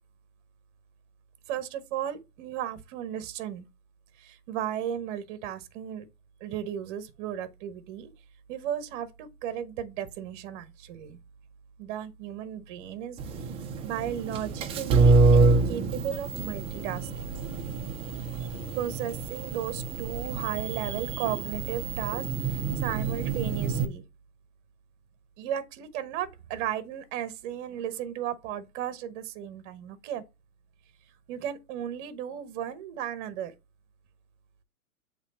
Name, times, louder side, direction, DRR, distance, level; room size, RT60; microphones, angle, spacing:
voice 1, 1.5-3.7 4.2-6.0 6.4-8.1 8.5-11.2 11.8-13.5 13.8-17.3 18.4-18.5 18.7-24.0 25.4-30.2 31.3-33.5, right 10 dB, 35° right, 1.1 m, -35 dB
sound 1, 13.2-23.9, right 3 dB, 10° right, 0.7 m, -26 dB
8.1 x 3.2 x 4.2 m
hypercardioid pair, 125°, 46 cm